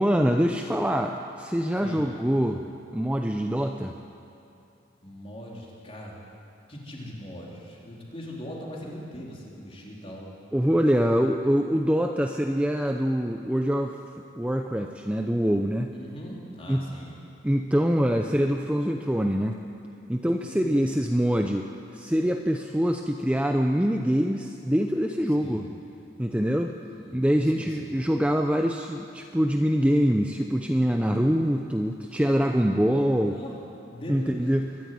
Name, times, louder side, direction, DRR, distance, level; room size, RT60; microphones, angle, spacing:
voice 1, 0.0-2.6 2.9-4.0 10.5-14.0 14.4-15.9 16.7-16.9 17.4-19.6 20.1-21.7 21.9-25.7 26.2-26.7 27.1-33.4 34.1-34.7, equal, 5° right, 4 dB, 0.6 m, -24 dB
voice 2, 1.8-2.1 5.0-6.1 6.7-10.3 15.9-17.2 20.4-21.0 25.4-25.6 26.9-27.3 27.5-28.0 33.3-33.6 33.8-34.6, equal, 30° left, -3 dB, 3.8 m, -40 dB
23.0 x 13.0 x 9.4 m, 2.6 s
head